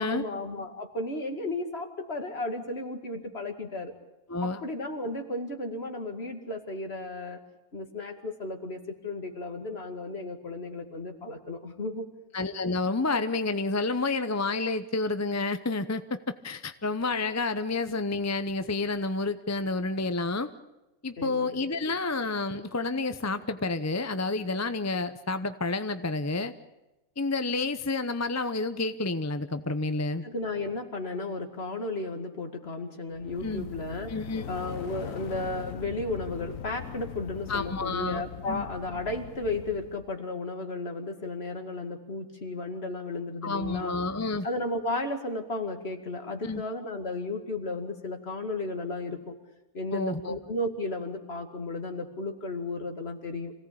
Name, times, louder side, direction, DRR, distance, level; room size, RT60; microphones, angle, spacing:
voice 1, 0.0-3.9 4.4-7.4 7.7-12.1 21.2-21.6 21.9-22.0 30.2-34.2 34.5-44.0 44.4-49.4 49.7-53.5, left 2 dB, 45° left, 5 dB, 2.4 m, -34 dB
voice 2, 4.3-4.6 12.3-16.2 16.4-20.5 21.0-26.5 27.2-30.2 33.4-33.7 34.1-34.5 37.5-38.7 43.4-44.5 46.4-46.6 49.9-50.3, left 3 dB, 15° left, 10 dB, 0.5 m, -29 dB
sound 1, 33.1-40.1, left 8 dB, 65° left, 1.4 m, -41 dB
26.0 x 17.0 x 8.6 m, 0.98 s
omnidirectional pair, 1.5 m